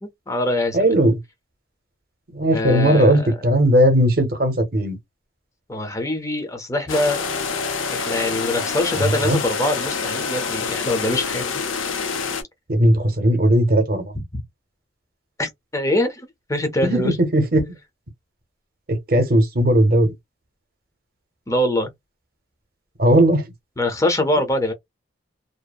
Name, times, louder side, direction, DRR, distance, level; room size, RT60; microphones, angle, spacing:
voice 1, 0.0-0.9 2.5-3.4 5.7-7.2 7.9-11.5 14.1-14.4 15.4-16.2 16.5-17.2 21.5-21.9 23.8-24.7, left 1 dB, 15° left, 0.6 m, -23 dB
voice 2, 0.7-1.2 2.3-5.0 8.9-9.4 12.7-14.0 16.8-17.7 18.9-20.1 23.0-23.4, right 1 dB, 50° right, 0.8 m, -17 dB
sound 1, 6.9-12.4, left 5 dB, 90° left, 0.7 m, -26 dB
2.7 x 2.0 x 2.3 m
head